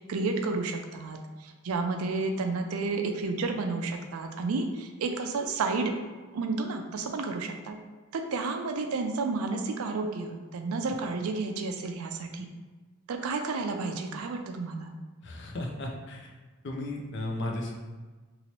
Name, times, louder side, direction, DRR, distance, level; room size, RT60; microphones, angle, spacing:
voice 1, 0.1-5.9 6.3-7.8 8.1-12.5 13.1-14.9, right 3 dB, 85° right, 5 dB, 0.4 m, -31 dB
voice 2, 15.2-16.3 16.6-17.7, left 1 dB, 55° left, 1 dB, 0.5 m, -35 dB
3.0 x 2.9 x 2.9 m, 1.3 s
head